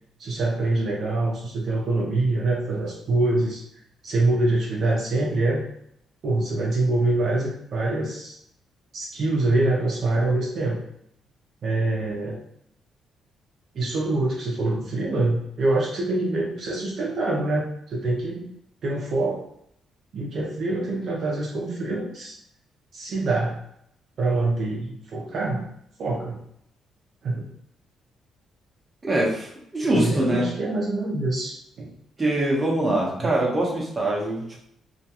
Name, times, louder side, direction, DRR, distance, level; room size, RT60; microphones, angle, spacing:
voice 1, 0.2-3.6 4.0-5.6 6.2-8.4 8.9-10.8 11.6-12.4 13.7-18.5 18.8-19.4 20.1-22.3 22.9-23.6 24.2-25.7 26.0-26.4 27.2-27.5 29.9-31.9 33.2-33.3, right 2 dB, 60° right, -3 dB, 0.5 m, -25 dB
voice 2, 29.0-30.5 32.2-34.6, right 1 dB, 25° right, -3 dB, 0.8 m, -23 dB
2.3 x 2.2 x 2.8 m, 0.74 s
cardioid pair, 90°, 0 cm